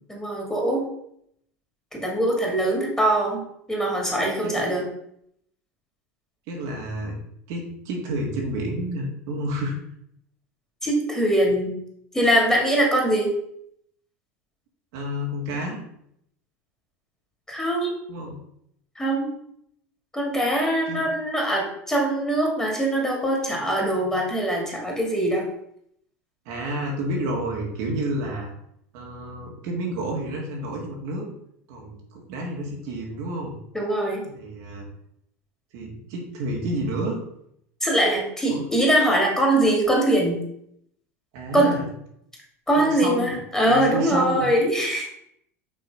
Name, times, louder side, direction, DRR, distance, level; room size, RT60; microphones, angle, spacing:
voice 1, 0.1-0.9 1.9-4.8 10.8-11.8 12.1-13.3 17.5-18.0 19.0-19.3 20.1-25.4 33.7-34.2 37.8-40.4 41.5-41.8 42.7-45.1, right 1 dB, 10° left, -1 dB, 2.5 m, -22 dB
voice 2, 6.5-7.2 7.5-9.8 14.9-15.8 18.1-18.4 20.9-21.0 26.5-28.5 28.9-31.3 31.7-33.6 34.3-34.9 35.7-37.2 38.5-38.7 41.3-41.8 42.7-43.4 43.7-44.5, right 1 dB, 65° right, -1 dB, 2.0 m, -30 dB
6.2 x 3.7 x 4.9 m, 0.72 s
hypercardioid pair, 95°, 7 cm